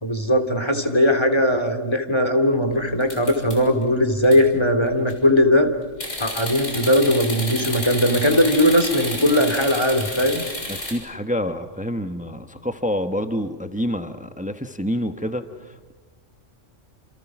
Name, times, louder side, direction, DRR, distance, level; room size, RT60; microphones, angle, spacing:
voice 1, 0.0-5.7 6.2-10.4, equal, 20° left, 6 dB, 2.9 m, -19 dB
sound 1, 3.0-3.8 4.2-4.4 4.8-5.2 6.0-10.9, left 1 dB, 85° left, 7.1 m, -31 dB
voice 2, 10.7-15.9, equal, 5° right, 8 dB, 1.3 m, -27 dB
29.0 x 29.0 x 6.2 m, 1.2 s
omnidirectional pair, 1.3 m